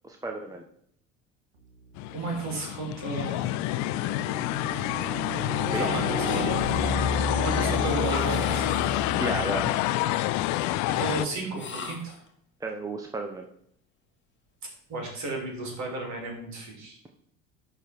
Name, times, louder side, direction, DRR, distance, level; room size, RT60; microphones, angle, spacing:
voice 1, 0.0-0.6 5.7-6.0 9.2-9.7 12.6-13.4, right 2 dB, 10° right, 3 dB, 0.8 m, -33 dB
sound 1, 2.0-11.3, left 15 dB, 45° left, 0.4 m, -28 dB
voice 2, 2.1-3.4 5.7-6.2 7.4-8.8 10.9-12.1 14.9-17.0, right 2 dB, 45° right, 0 dB, 3.4 m, -33 dB
sound 2, 2.1-2.4 3.0-9.8, right 1 dB, 70° right, 1.8 m, -33 dB
sound 3, 6.2-7.0 8.0-9.2 11.5-12.3, left 4 dB, 30° left, 1.6 m, -39 dB
11.0 x 3.9 x 4.5 m, 0.69 s
figure-of-eight pair, 65°, 40 cm